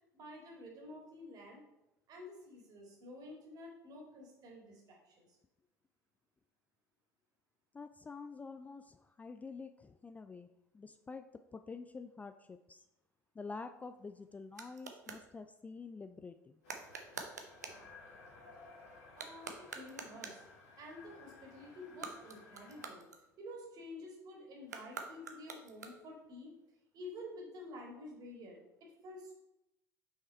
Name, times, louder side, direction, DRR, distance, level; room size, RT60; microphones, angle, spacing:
voice 1, 0.1-1.6 2.1-5.3 19.1-20.4 20.8-23.0 23.4-26.5 26.9-29.3, left 1 dB, 45° right, 0 dB, 2.2 m, -50 dB
voice 2, 7.7-10.5 10.7-11.3 11.5-12.8 13.4-16.6, left 4 dB, 15° left, 9 dB, 0.3 m, -48 dB
sound 1, 13.6-15.3 16.6-17.9 19.1-20.5 21.8-23.7 24.6-26.2, right 4 dB, 80° right, 0.7 m, -48 dB
sound 2, 16.6-22.9, left 3 dB, 65° left, 2.0 m, -57 dB
5.7 x 5.4 x 4.3 m, 0.92 s
figure-of-eight pair, 65°, 9 cm